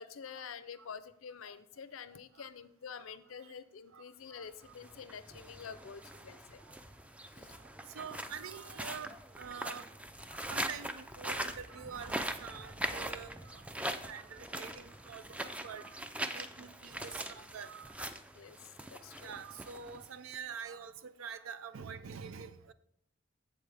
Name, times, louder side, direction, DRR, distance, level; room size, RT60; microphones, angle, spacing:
voice 1, 0.0-6.6 7.3-7.5 18.3-19.3, left 6 dB, 80° left, 0.5 m, -48 dB
voice 2, 2.1-2.5 2.9-3.5 3.9-5.0 6.6-6.8 7.6-9.9 10.3-13.7 14.0-18.0 19.2-22.7, right 6 dB, 80° right, 0.5 m, -47 dB
sound 1, 4.6-20.3, right 1 dB, 5° right, 0.3 m, -42 dB
8.5 x 7.3 x 3.3 m
head